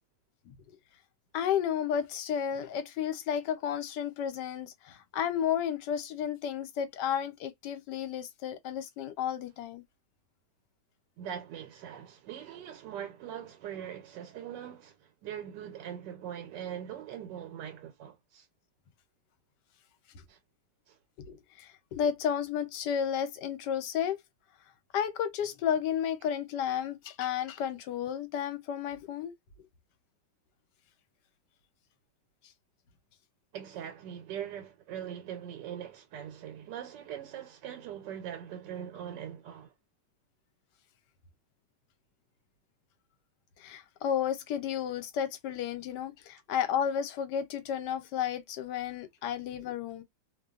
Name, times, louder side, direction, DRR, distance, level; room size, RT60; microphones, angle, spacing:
voice 1, 0.5-0.8 1.3-9.8 21.2-24.2 24.9-29.3 43.6-50.0, left 8 dB, 80° left, 1.3 m, -32 dB
voice 2, 11.2-18.5 20.3-20.4 20.9-21.0 33.5-39.7, right 9 dB, 90° right, 1.3 m, -41 dB
2.9 x 2.2 x 2.3 m
omnidirectional pair, 1.8 m